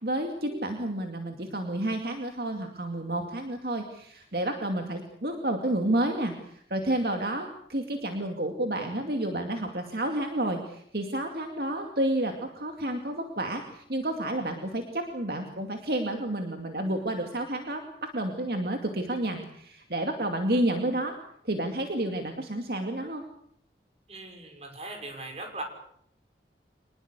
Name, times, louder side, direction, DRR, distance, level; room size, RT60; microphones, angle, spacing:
voice 1, 0.0-21.2 21.4-23.2, right 1 dB, 60° right, 4 dB, 2.4 m, -30 dB
voice 2, 24.1-25.6, right 2 dB, 35° right, 4 dB, 5.8 m, -39 dB
25.0 x 20.0 x 8.2 m, 0.69 s
head